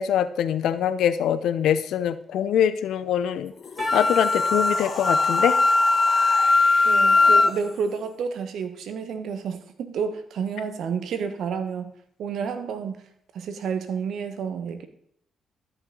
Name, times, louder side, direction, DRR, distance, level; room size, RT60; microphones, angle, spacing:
voice 1, 0.0-3.5 3.9-5.6, left 9 dB, 80° left, 0.6 m, -23 dB
sound 1, 3.5-8.1, left 5 dB, 60° left, 1.6 m, -36 dB
Wind instrument woodwind instrument, 3.8-7.5, left 3 dB, 25° left, 0.5 m, -19 dB
Percussion, 3.8-7.7, right 3 dB, 40° right, 2.4 m, -41 dB
voice 2, 6.8-11.9 12.2-13.0 13.3-14.9, right 6 dB, 75° right, 1.2 m, -30 dB
13.0 x 5.9 x 3.9 m
supercardioid pair, 65°, 0 cm